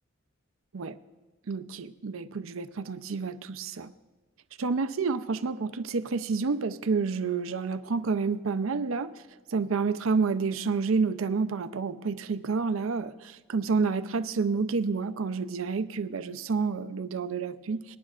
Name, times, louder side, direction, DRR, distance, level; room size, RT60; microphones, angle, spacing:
voice 1, 1.5-3.9 4.6-9.1 9.5-18.0, right 4 dB, 90° right, 0.6 m, -29 dB
24.5 x 10.0 x 2.4 m
head